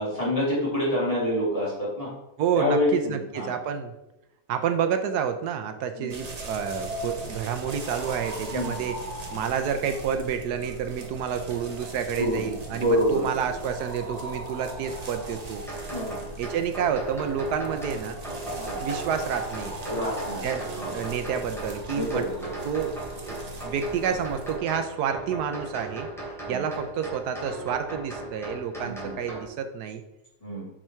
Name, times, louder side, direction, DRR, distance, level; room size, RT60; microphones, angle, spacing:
voice 1, 0.0-2.1 2.5-3.6 5.9-6.1 8.5-8.8 12.2-13.5 15.9-16.2 18.6-18.8 19.9-21.1 21.9-22.5 26.4-26.6 28.8-29.2 30.4-30.7, left 1 dB, 20° left, -7 dB, 3.0 m, -27 dB
voice 2, 2.4-3.9 4.5-9.0 9.3-15.6 16.4-18.2 18.8-19.7 20.4-22.2 22.7-22.9 23.2-23.4 23.6-26.1 26.5-30.0, right 7 dB, 80° right, 8 dB, 1.2 m, -29 dB
sound 1, 6.1-24.6, right 2 dB, 30° right, 0.8 m, -38 dB
sound 2, 15.7-29.4, right 1 dB, ahead, 2.7 m, -38 dB
6.5 x 5.9 x 4.5 m, 0.90 s
omnidirectional pair, 1.7 m